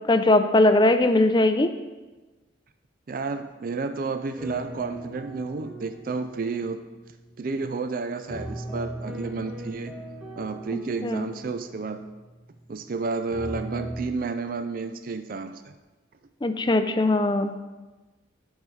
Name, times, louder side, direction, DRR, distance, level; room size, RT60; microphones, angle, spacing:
voice 1, 0.0-1.7 11.0-11.2 16.4-17.6, left 2 dB, 25° left, 8 dB, 0.4 m, -20 dB
voice 2, 3.1-6.8 7.4-9.9 10.4-12.0 12.7-15.6, right 4 dB, 45° right, 9 dB, 0.4 m, -31 dB
sound 1, 4.4-7.7 8.3-12.9 13.3-14.0, equal, 5° right, 1.2 m, -39 dB
15.5 x 5.5 x 3.2 m, 1.2 s
head